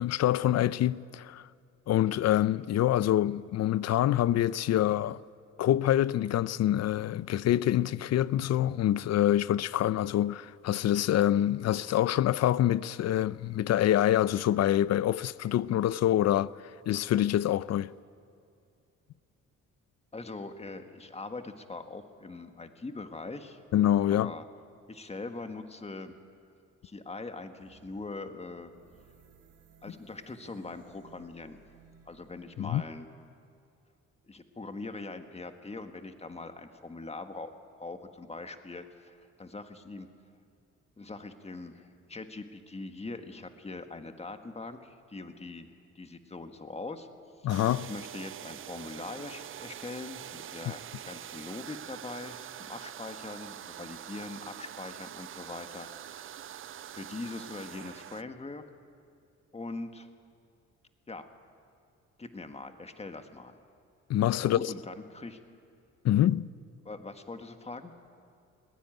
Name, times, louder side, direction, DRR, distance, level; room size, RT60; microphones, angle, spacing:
voice 1, 0.0-1.5 1.9-5.2 5.6-16.5 16.9-17.9 23.7-24.3 32.6-32.8 47.4-47.9 64.1-64.7 66.0-66.5, left 12 dB, 60° left, 0.5 m, -26 dB
voice 2, 20.1-23.6 24.1-24.4 24.9-26.1 26.8-28.7 29.8-31.6 32.1-33.1 34.2-37.5 37.8-40.1 41.0-47.1 47.4-47.5 47.9-56.4 56.9-58.6 59.5-60.1 61.1-61.3 62.2-63.6 64.4-65.4 66.8-67.9, left 3 dB, 20° left, 1.6 m, -42 dB
sound 1, 27.6-32.8, right 5 dB, 75° right, 2.7 m, -60 dB
sound 2, 47.5-58.2, right 11 dB, 45° right, 0.5 m, -44 dB
20.5 x 16.0 x 9.1 m
cardioid pair, 90°, 30 cm